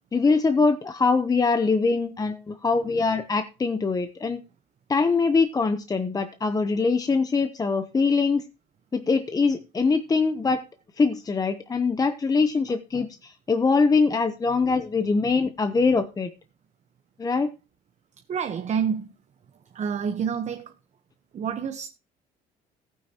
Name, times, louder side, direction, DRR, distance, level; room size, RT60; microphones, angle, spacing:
voice 1, 0.1-4.4 4.9-8.4 8.9-10.6 11.0-16.3 17.2-17.5, left 4 dB, 20° left, 0.8 m, -23 dB
voice 2, 18.3-19.1 19.7-20.7 21.3-21.9, right 7 dB, 45° right, 1.0 m, -28 dB
15.5 x 9.5 x 2.9 m
cardioid pair, 110°, 17 cm